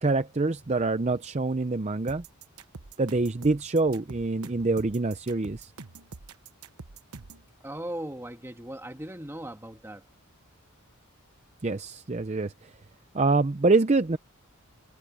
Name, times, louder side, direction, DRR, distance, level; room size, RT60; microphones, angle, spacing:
voice 1, 0.0-2.2 3.0-5.7 11.6-12.7 13.1-14.2, right 3 dB, 30° right, 0.5 m, -25 dB
sound 1, 2.1-7.5, right 4 dB, 80° right, 1.1 m, -45 dB
voice 2, 7.6-10.0, right 1 dB, 10° right, 1.7 m, -38 dB
head